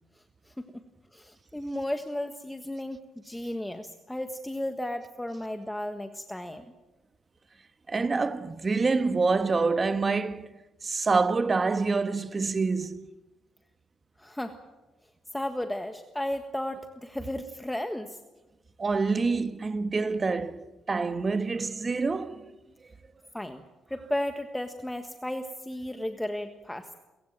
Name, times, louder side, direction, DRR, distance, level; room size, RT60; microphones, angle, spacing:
voice 1, 0.5-0.8 1.1-3.0 3.2-6.6 14.2-14.6 15.3-18.2 23.3-23.6 23.9-27.0, left 1 dB, 5° left, 1.5 m, -34 dB
voice 2, 7.9-10.5 10.8-13.0 18.8-22.4, right 4 dB, 30° right, 1.4 m, -26 dB
29.5 x 15.5 x 9.0 m
cardioid pair, 90°, 0 cm